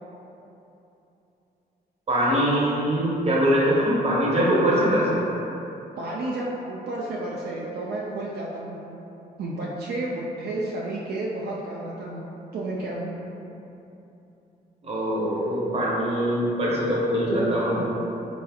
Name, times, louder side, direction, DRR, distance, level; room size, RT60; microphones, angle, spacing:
voice 1, 2.1-5.2 14.8-17.9, equal, 40° right, -5 dB, 0.9 m, -22 dB
voice 2, 6.0-8.9 9.4-12.3 12.5-13.1, right 2 dB, 75° right, -4 dB, 0.4 m, -31 dB
3.9 x 3.0 x 2.3 m, 2.9 s
cardioid pair, 95°, 17 cm